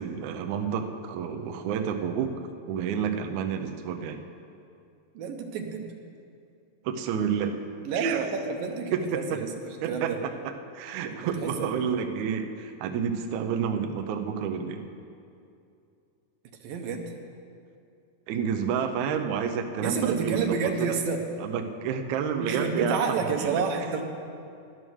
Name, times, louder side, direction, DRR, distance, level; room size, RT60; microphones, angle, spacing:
voice 1, 0.0-2.4 2.7-4.2 6.8-7.6 8.0-8.2 8.9-9.0 9.8-10.1 10.4-14.9 18.3-20.9 21.4-23.6, right 7 dB, 75° right, 5 dB, 1.9 m, -29 dB
voice 2, 5.1-5.9 7.9-10.2 11.1-11.7 16.6-17.1 19.8-21.2 22.4-24.0, right 5 dB, 90° right, 4 dB, 2.8 m, -29 dB
11.0 x 11.0 x 6.3 m, 2.5 s
omnidirectional pair, 4.0 m